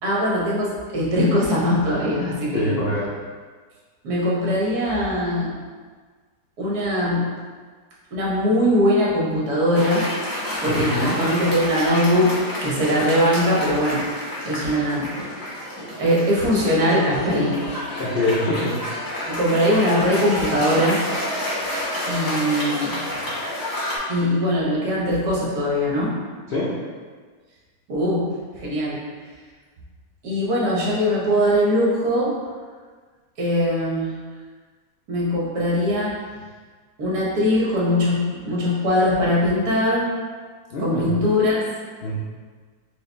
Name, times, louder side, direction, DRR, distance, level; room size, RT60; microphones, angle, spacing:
voice 1, 0.0-2.8 4.0-5.5 6.6-7.3 8.1-10.0 10.6-12.3 12.6-14.0 14.4-15.1 16.0-17.5 19.3-21.0 22.1-23.0 24.1-26.1 27.9-28.2 28.6-29.0 30.2-32.3 33.4-34.1 35.1-36.2 37.0-40.1 40.8-41.6, equal, 70° right, -5 dB, 1.5 m, -21 dB
voice 2, 2.5-3.1 10.6-11.1 18.0-18.7 26.5-26.7 40.7-41.2 42.0-42.1, left 1 dB, 75° left, -6 dB, 0.5 m, -24 dB
Cheering / Applause, 9.7-24.0, left 1 dB, 25° left, 0.5 m, -29 dB
4.8 x 2.5 x 3.3 m, 1.5 s
omnidirectional pair, 1.8 m